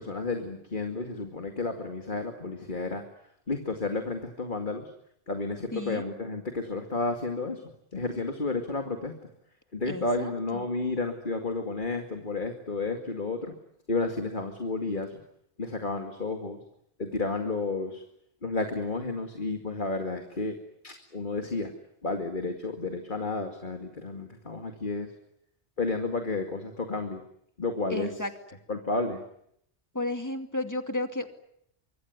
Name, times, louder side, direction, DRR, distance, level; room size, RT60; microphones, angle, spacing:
voice 1, 0.0-3.0 3.5-4.9 5.3-7.6 7.9-9.1 9.7-13.5 13.9-15.2 15.6-16.6 17.0-18.0 18.4-20.6 20.8-21.7 22.0-25.1 25.8-27.2 27.6-28.1 28.7-29.2, left 3 dB, 50° left, 5 dB, 2.4 m, -31 dB
voice 2, 5.7-6.0 9.9-10.7 27.9-28.3 29.9-31.3, left 2 dB, 15° left, 7 dB, 2.5 m, -33 dB
25.0 x 24.0 x 9.5 m, 0.72 s
omnidirectional pair, 1.1 m